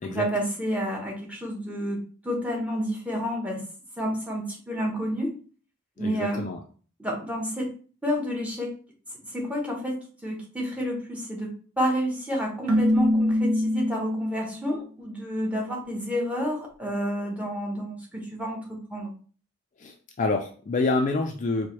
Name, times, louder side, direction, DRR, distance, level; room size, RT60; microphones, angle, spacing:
voice 1, 0.0-3.6 4.0-5.4 6.0-6.4 7.0-7.7 8.0-8.7 9.2-19.1, equal, 5° right, -2 dB, 0.8 m, -30 dB
voice 2, 6.0-6.6 19.8-21.7, left 3 dB, 35° left, 3 dB, 0.3 m, -27 dB
Keyboard (musical), 12.7-14.7, left 1 dB, 65° right, 0.6 m, -24 dB
4.5 x 2.1 x 3.0 m, 0.41 s
head